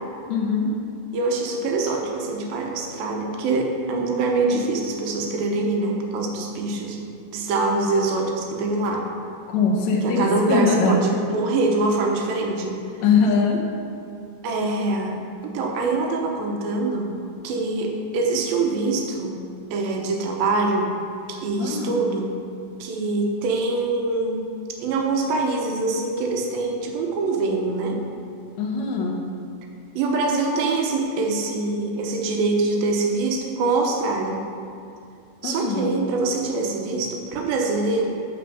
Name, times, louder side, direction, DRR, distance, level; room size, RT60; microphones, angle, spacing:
voice 1, 0.3-0.7 9.5-11.0 13.0-13.7 21.6-21.9 28.6-29.2 35.4-35.9, left 4 dB, 80° left, -1 dB, 1.6 m, -21 dB
voice 2, 1.1-9.1 10.0-12.8 14.4-15.2 15.5-17.1 17.4-19.4 19.7-20.9 21.3-22.3 22.8-24.4 24.8-28.0 30.0-34.4 35.4-38.1, right 3 dB, 70° right, 1 dB, 2.7 m, -24 dB
11.5 x 5.0 x 7.1 m, 2.5 s
omnidirectional pair, 4.8 m